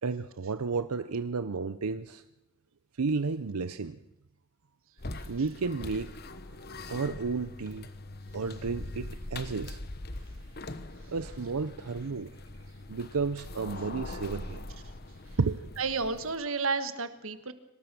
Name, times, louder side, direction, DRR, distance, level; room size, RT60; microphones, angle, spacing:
voice 1, 0.0-2.2 2.9-4.0 5.3-6.1 6.6-7.9 8.3-9.8 11.1-12.3 12.9-14.7 15.4-15.6, right 4 dB, 90° right, 11 dB, 0.7 m, -32 dB
sound 1, 5.0-16.4, left 2 dB, 45° left, 1.2 m, -42 dB
voice 2, 15.8-17.5, right 4 dB, 65° right, 10 dB, 1.4 m, -31 dB
24.5 x 19.0 x 6.1 m, 0.90 s
head